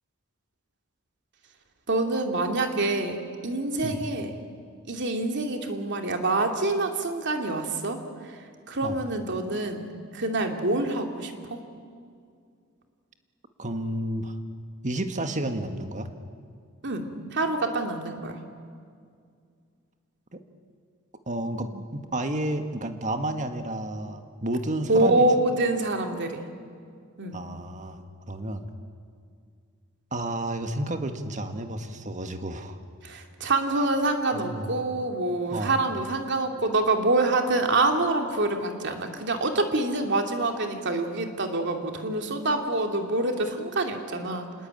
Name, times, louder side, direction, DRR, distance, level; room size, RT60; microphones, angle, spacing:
voice 1, 1.9-3.2 3.4-4.3 4.9-8.0 8.7-11.6 16.8-17.1 17.3-18.4 24.9-26.4 27.2-27.4 33.0-44.5, right 2 dB, 55° right, 4 dB, 2.7 m, -26 dB
voice 2, 13.6-14.4 14.8-16.1 20.3-20.4 21.3-25.3 27.3-28.7 30.1-32.8 34.3-34.7 35.5-35.8, right 1 dB, 35° right, 7 dB, 1.8 m, -31 dB
27.5 x 20.5 x 9.0 m, 2.2 s
head